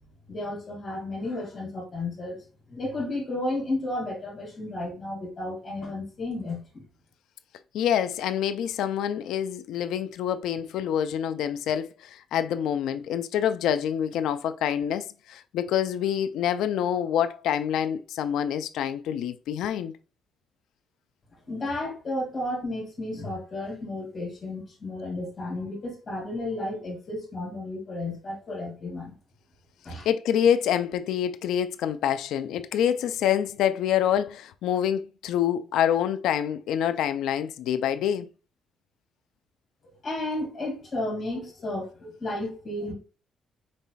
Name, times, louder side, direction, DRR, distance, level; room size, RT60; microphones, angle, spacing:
voice 1, 0.3-2.4 2.7-6.8 21.5-29.1 29.8-30.1 40.0-42.9, left 2 dB, 30° left, 2.1 m, -33 dB
voice 2, 7.7-19.9 30.1-38.3, left 9 dB, 90° left, 0.3 m, -26 dB
5.3 x 4.1 x 2.3 m
cardioid pair, 175°, 0 cm